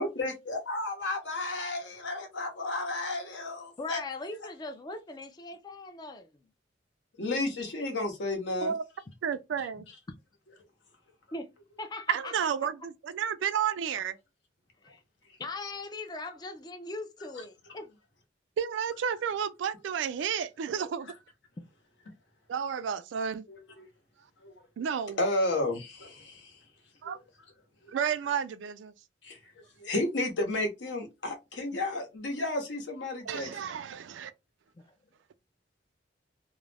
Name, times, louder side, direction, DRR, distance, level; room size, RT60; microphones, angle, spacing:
voice 1, 0.0-4.0 7.2-8.7 23.5-23.6 24.4-24.5 25.2-26.5 29.2-29.4 29.8-33.5, left 2 dB, 70° left, 0.9 m, -32 dB
voice 2, 3.8-6.3 11.3-12.3 14.8-15.0 15.4-17.9 31.7-31.8, left 2 dB, 20° left, 0.4 m, -40 dB
voice 3, 9.2-9.9 12.1-14.2 18.6-21.1 22.5-23.5 24.8-25.2 27.0-27.2 27.9-28.9 33.2-34.3, right 7 dB, 80° right, 0.3 m, -31 dB
2.4 x 2.0 x 3.2 m
head